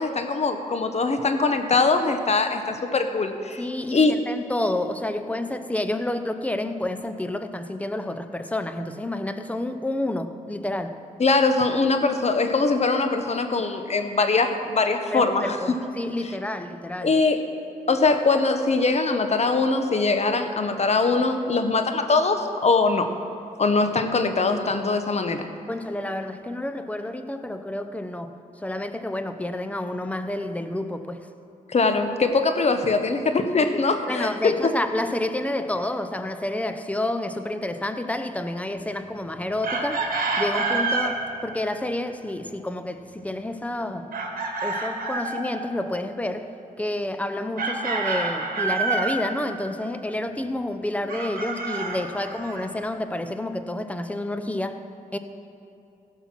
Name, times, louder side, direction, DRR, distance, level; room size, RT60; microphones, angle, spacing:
voice 1, 0.0-3.6 3.9-4.2 11.2-15.6 17.0-17.4 17.9-23.1 23.6-25.5 31.7-34.7, left 3 dB, 45° left, 7 dB, 1.0 m, -22 dB
voice 2, 3.6-11.0 15.1-17.1 25.7-28.3 28.6-31.2 34.1-40.1 40.4-44.1 44.6-46.5 46.8-54.8 55.1-55.2, left 1 dB, 10° left, 8 dB, 0.7 m, -29 dB
Chicken rooster, 39.6-41.2 44.1-45.5 47.6-49.2 51.1-52.6, right 3 dB, 70° right, 1.6 m, -27 dB
16.5 x 5.6 x 6.1 m, 2.7 s
cardioid pair, 65°, 15 cm